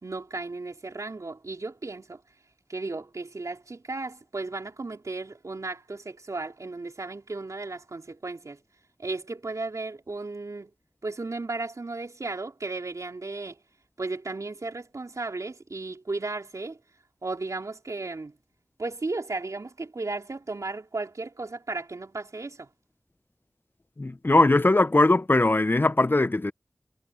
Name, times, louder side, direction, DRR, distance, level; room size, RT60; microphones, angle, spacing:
voice 1, 0.0-2.2 2.7-8.6 9.0-10.7 11.0-13.6 14.0-16.8 17.2-18.3 18.8-22.7, right 3 dB, 85° right, 3.8 m, -35 dB
voice 2, 24.0-26.5, left 2 dB, 40° left, 0.6 m, -20 dB
wide cardioid pair, 55°, 5 cm